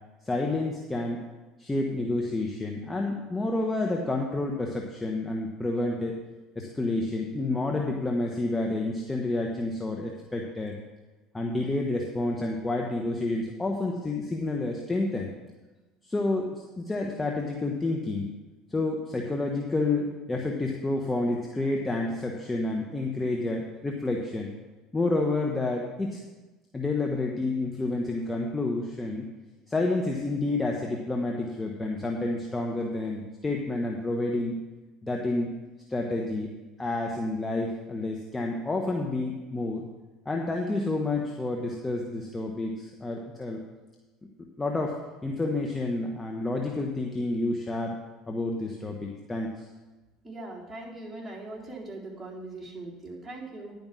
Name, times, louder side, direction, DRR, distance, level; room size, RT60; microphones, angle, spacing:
voice 1, 0.2-1.2 1.6-6.2 6.5-10.7 11.3-15.3 16.0-16.5 16.8-18.3 18.7-24.5 24.9-26.2 26.7-29.3 29.7-34.6 35.0-35.5 35.9-36.5 36.8-39.8 40.2-43.6 44.6-45.0 45.2-48.0 48.3-49.7, left 2 dB, 15° left, 0 dB, 1.3 m, -29 dB
voice 2, 50.2-53.8, right 2 dB, 5° right, -6 dB, 4.0 m, -40 dB
10.5 x 5.3 x 7.7 m, 1.2 s
hypercardioid pair, 80°, 0 cm